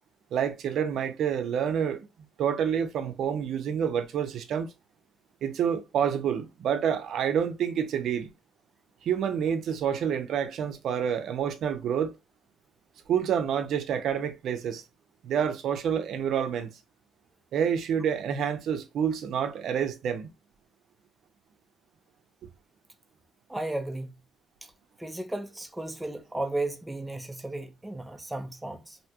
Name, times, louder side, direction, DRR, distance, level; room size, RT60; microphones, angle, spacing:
voice 1, 0.3-2.1 2.4-4.7 5.4-8.3 9.0-12.1 13.1-14.8 15.2-16.8 17.5-20.3, right 8 dB, 75° right, 0.5 m, -28 dB
voice 2, 23.5-24.2 24.6-24.7 25.0-29.0, right 2 dB, 10° right, 0.4 m, -34 dB
2.7 x 2.2 x 2.8 m
cardioid pair, 90°, 0 cm